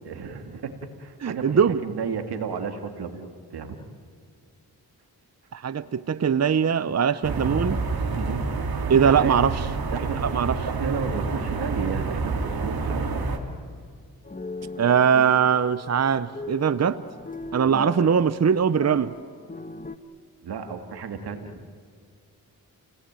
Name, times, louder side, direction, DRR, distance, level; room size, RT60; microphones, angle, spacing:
voice 1, 0.0-1.4 1.8-3.8 8.1-8.5 9.1-9.4 9.9-10.3 10.7-13.1 17.6-17.8 20.4-21.6, right 6 dB, 90° right, 6 dB, 2.4 m, -33 dB
voice 2, 1.2-1.8 5.5-7.8 8.9-9.6 10.2-10.6 14.8-17.0 17.5-19.1, right 7 dB, 45° right, 14 dB, 0.8 m, -21 dB
sound 1, 7.2-13.4, right 4 dB, 65° right, 3.1 m, -28 dB
sound 2, 14.2-20.0, left 2 dB, 20° left, 1.3 m, -39 dB
30.0 x 19.0 x 9.1 m, 2.1 s
cardioid pair, 55°, 38 cm